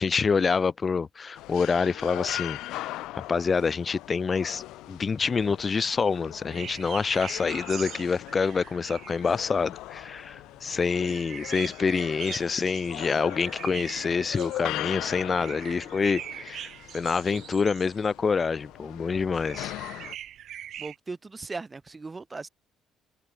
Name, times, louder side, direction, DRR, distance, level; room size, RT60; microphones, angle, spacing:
voice 1, 0.0-19.7, left 5 dB, 25° left, 0.3 m, -27 dB
sound 1, 1.4-20.2, left 17 dB, 85° left, 0.7 m, -40 dB
sound 2, 4.9-21.0, right 11 dB, 50° right, 6.7 m, -42 dB
voice 2, 20.8-22.5, right 3 dB, 15° right, 3.8 m, -38 dB
cardioid pair, 165°, 0 cm